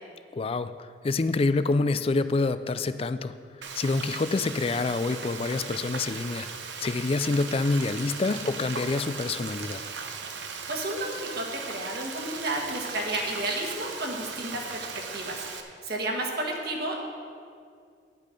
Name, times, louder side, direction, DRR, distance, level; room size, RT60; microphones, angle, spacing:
voice 1, 0.3-3.3 3.7-6.5 6.8-9.8, left 3 dB, 30° left, 12 dB, 0.3 m, -27 dB
Frying (food), 3.6-15.6, right 5 dB, 85° right, 0.9 m, -38 dB
voice 2, 10.7-14.9 15.1-15.4 15.8-17.0, right 1 dB, 60° right, 0 dB, 1.6 m, -32 dB
10.5 x 8.3 x 5.2 m, 2.2 s
head